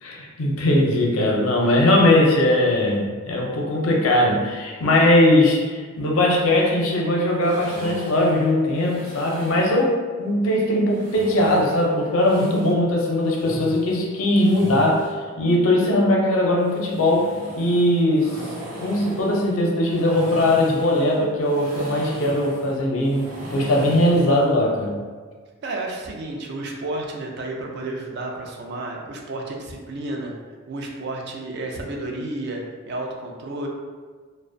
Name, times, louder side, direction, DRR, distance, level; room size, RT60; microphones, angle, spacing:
voice 1, 0.0-15.1 15.4-18.4 18.8-25.0, left 1 dB, 70° left, -1 dB, 0.5 m, -20 dB
sound 1, 7.4-9.8 10.9-12.7 13.2-15.2 16.6-24.5, equal, 85° right, 0.8 m, -37 dB
voice 2, 25.6-30.3 30.7-33.7, right 2 dB, 50° right, 0 dB, 0.3 m, -31 dB
2.4 x 2.0 x 2.5 m, 1.5 s
head